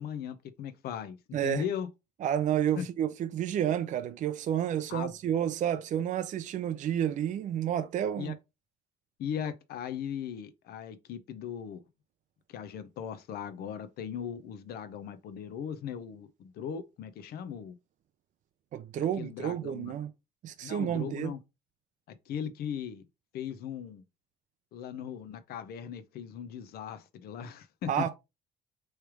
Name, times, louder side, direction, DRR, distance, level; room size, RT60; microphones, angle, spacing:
voice 1, 0.0-1.9 2.8-2.9 4.9-5.1 8.2-8.3 9.2-11.9 12.5-17.8 19.2-19.9 20.6-21.4 22.3-23.0 23.3-24.0 24.7-28.1, left 8 dB, 70° left, 0.7 m, -38 dB
voice 2, 1.3-1.6 2.2-8.3 18.7-20.1 20.4-21.4 27.9-28.1, right 10 dB, 50° right, 0.4 m, -30 dB
3.3 x 3.1 x 4.7 m
cardioid pair, 110°, 17 cm